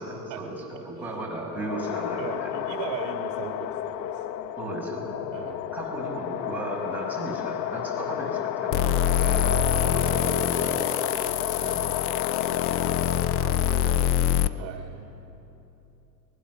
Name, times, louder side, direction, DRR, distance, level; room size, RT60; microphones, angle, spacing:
voice 1, 0.0-2.5 4.6-5.4 5.7-9.4 9.8-10.4 11.6-11.7 13.1-14.1, right 2 dB, 5° right, -4 dB, 5.6 m, -36 dB
sound 1, 1.4-13.9, left 11 dB, 80° left, 0.9 m, -32 dB
voice 2, 2.2-4.2 5.3-5.7 9.2-11.9 14.6-15.1, right 8 dB, 60° right, 3 dB, 1.9 m, -37 dB
sound 2, 8.7-14.5, left 11 dB, 30° left, 0.5 m, -25 dB
24.0 x 21.0 x 6.3 m, 3.0 s
supercardioid pair, 125°, 50 cm